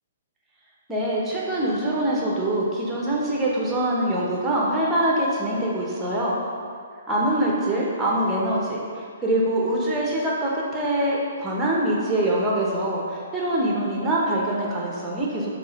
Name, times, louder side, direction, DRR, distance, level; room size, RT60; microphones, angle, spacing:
voice 1, 0.9-6.3 7.1-8.8 9.2-15.5, right 1 dB, 10° right, -4 dB, 1.2 m, -24 dB
6.1 x 3.2 x 5.4 m, 2.1 s
figure-of-eight pair, 120°, 0 cm